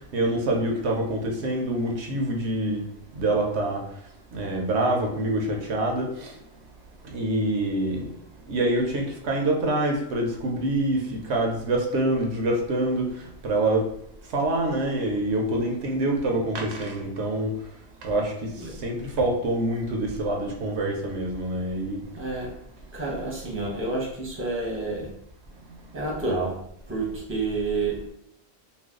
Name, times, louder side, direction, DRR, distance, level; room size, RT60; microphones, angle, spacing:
voice 1, 0.1-2.9 3.2-3.8 4.3-6.3 7.1-8.1 8.5-13.1 13.4-13.9 14.3-17.5 18.0-18.5 18.8-22.0, right 1 dB, 75° right, 1 dB, 0.9 m, -26 dB
voice 2, 22.1-22.5 22.9-25.1 25.9-26.6 26.9-28.1, right 3 dB, 15° right, -3 dB, 0.8 m, -29 dB
2.5 x 2.2 x 3.5 m, 0.79 s
omnidirectional pair, 1.2 m